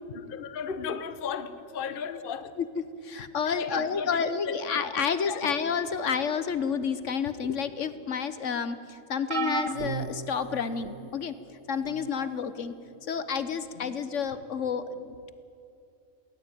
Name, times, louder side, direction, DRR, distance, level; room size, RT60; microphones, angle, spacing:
voice 1, 0.1-2.5 3.4-5.6 12.2-12.3 13.7-13.9, left 6 dB, 45° left, 12 dB, 1.0 m, -36 dB
voice 2, 3.0-11.3 11.7-12.7 13.1-15.3, left 6 dB, 65° left, 13 dB, 1.3 m, -30 dB
sound 1, 9.3-11.1 11.8-12.1 13.4-13.5, right 5 dB, 65° right, 1.5 m, -34 dB
19.0 x 19.0 x 9.1 m, 2.5 s
omnidirectional pair, 1.4 m